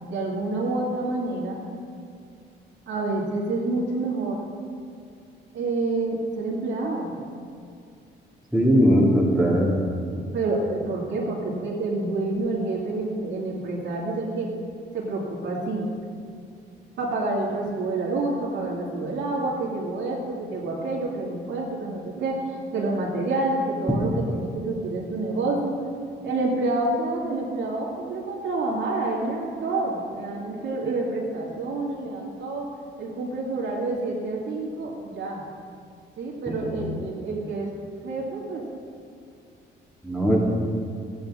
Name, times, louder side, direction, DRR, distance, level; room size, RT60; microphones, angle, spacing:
voice 1, 0.0-1.6 2.9-4.4 5.5-7.2 8.9-9.0 9.4-9.6 10.1-14.5 14.9-15.9 17.0-25.8 26.2-32.7 33.0-35.4 36.2-37.8 38.0-38.6, right 2 dB, 70° right, -3 dB, 2.3 m, -28 dB
voice 2, 8.5-9.7 36.5-36.8 40.0-40.4, equal, ahead, -5 dB, 2.4 m, -20 dB
14.5 x 9.0 x 3.7 m, 2.4 s
cardioid pair, 90°, 20 cm